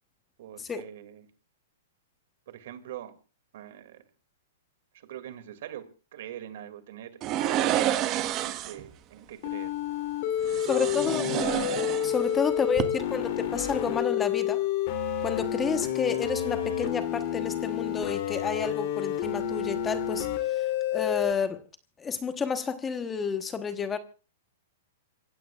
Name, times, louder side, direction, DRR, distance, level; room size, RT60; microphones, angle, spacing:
voice 1, 0.4-1.3 2.5-3.1 3.5-4.0 4.9-5.8 6.1-7.1 7.4-7.9 8.4-9.7 10.4-11.1 12.2-13.0, right 11 dB, 65° right, 2.5 m, -43 dB
sound 1, 7.2-8.9 10.4-12.4 12.7-12.8, right 12 dB, 35° right, 1.3 m, -29 dB
sound 2, 9.4-21.3, left 11 dB, 50° left, 3.3 m, -29 dB
voice 2, 10.7-11.2 12.0-14.6 15.2-20.3 20.5-21.6 22.0-24.0, left 5 dB, 15° left, 1.2 m, -30 dB
27.0 x 16.0 x 2.5 m
hypercardioid pair, 135°, 0 cm